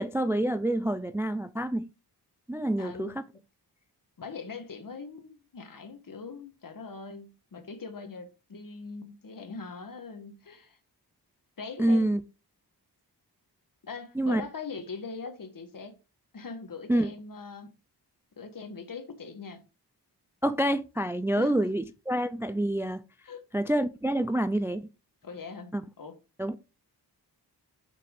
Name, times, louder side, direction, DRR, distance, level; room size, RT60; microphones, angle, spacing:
voice 1, 0.0-1.9 2.5-3.2 11.8-12.2 14.2-14.4 16.9-17.1 20.4-23.0 23.5-24.9 25.7-25.8 26.4-26.6, right 1 dB, 5° right, 0.3 m, -27 dB
voice 2, 2.8-3.1 4.2-10.8 11.6-12.1 13.8-16.0 16.3-17.7 18.4-19.6 21.3-21.5 23.2-23.4 25.2-26.1, left 4 dB, 55° left, 1.4 m, -41 dB
6.1 x 5.9 x 3.7 m
wide cardioid pair, 100°, 40 cm